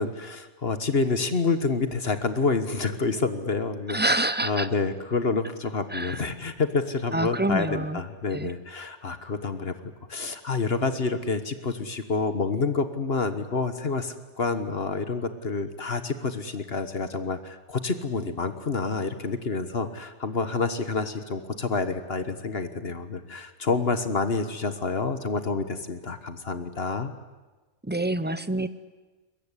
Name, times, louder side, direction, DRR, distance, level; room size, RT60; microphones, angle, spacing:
voice 1, 0.0-9.7 10.1-27.1, left 4 dB, 50° left, 10 dB, 1.6 m, -28 dB
voice 2, 3.9-4.7 5.9-6.2 7.1-8.0 8.3-8.5 27.8-28.7, right 2 dB, 10° right, 14 dB, 0.7 m, -27 dB
22.5 x 21.5 x 10.0 m, 1.2 s
omnidirectional pair, 1.3 m